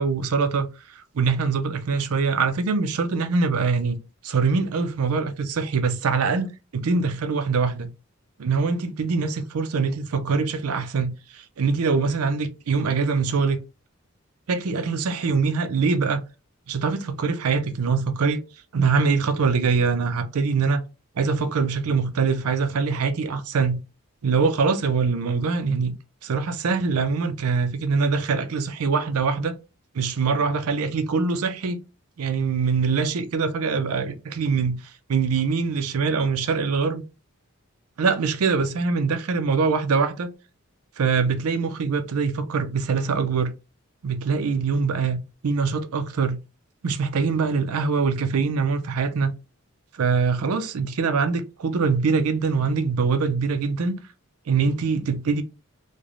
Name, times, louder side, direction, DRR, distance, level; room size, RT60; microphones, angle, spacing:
voice 1, 0.0-7.9 8.4-13.6 14.5-16.2 16.7-18.4 18.7-20.8 21.2-23.8 24.2-26.0 26.2-29.6 29.9-31.8 32.2-34.8 35.1-37.0 38.0-40.3 41.0-43.5 44.0-46.4 46.8-49.3 49.9-54.0 54.5-55.4, right 5 dB, 85° right, 0.5 m, -23 dB
3.2 x 2.2 x 2.4 m
head